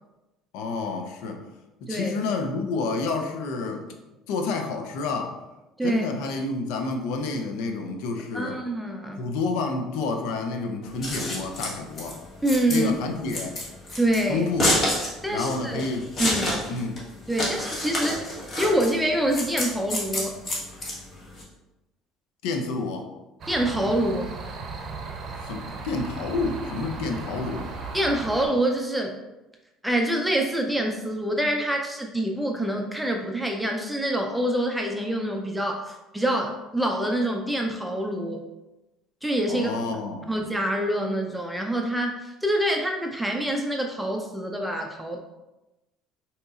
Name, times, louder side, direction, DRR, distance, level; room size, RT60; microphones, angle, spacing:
voice 1, 0.5-1.4 1.8-3.9 4.3-5.4 5.8-8.6 9.2-12.2 12.7-13.6 14.3-14.7 15.3-16.1 16.7-17.0 22.4-23.1 25.4-27.7 39.5-40.3, left 3 dB, 80° left, 4 dB, 0.5 m, -29 dB
voice 2, 1.9-2.2 5.8-6.0 8.3-9.2 12.4-12.9 14.0-14.5 15.2-15.9 16.2-16.7 17.3-20.4 23.5-24.3 27.9-29.2 29.8-38.4 39.2-39.7 40.3-45.2, right 1 dB, 5° right, 2 dB, 0.4 m, -26 dB
Scissors, 10.8-21.4, left 1 dB, 45° left, 1.2 m, -28 dB
sound 1, 23.4-28.5, right 4 dB, 50° right, 0.6 m, -36 dB
3.9 x 2.8 x 2.4 m, 1.0 s
supercardioid pair, 90°, 0 cm